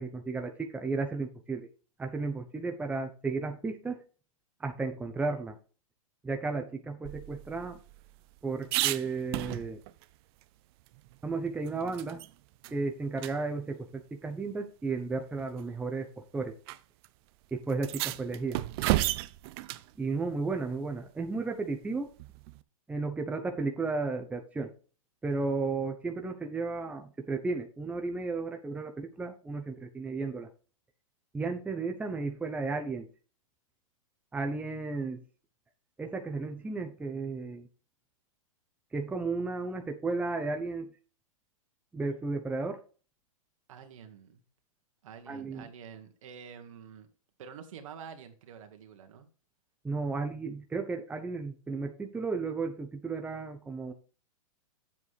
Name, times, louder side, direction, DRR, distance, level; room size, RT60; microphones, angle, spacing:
voice 1, 0.0-1.7 2.0-4.0 4.6-5.6 6.2-7.8 8.4-9.8 11.2-12.2 12.7-16.1 16.3-16.5 17.5-18.6 20.0-22.1 22.9-24.7 25.2-30.5 31.3-33.1 34.3-35.2 36.0-37.7 38.9-40.9 41.9-42.8 45.3-45.7 49.8-53.9, right 3 dB, 10° right, 5 dB, 0.8 m, -33 dB
sound 1, 7.0-10.0 10.4-10.5 10.9-12.3 12.6-12.8 13.2-13.3 14.4-14.5 15.4-15.7 16.7-16.8 17.0-17.1 17.7-19.9 22.2-22.6, right 17 dB, 45° right, 0.6 m, -33 dB
voice 2, 43.7-44.4 45.0-47.1 47.4-49.3, right 7 dB, 65° right, 5 dB, 2.0 m, -48 dB
9.2 x 7.5 x 3.4 m, 0.38 s
hypercardioid pair, 125°, 18 cm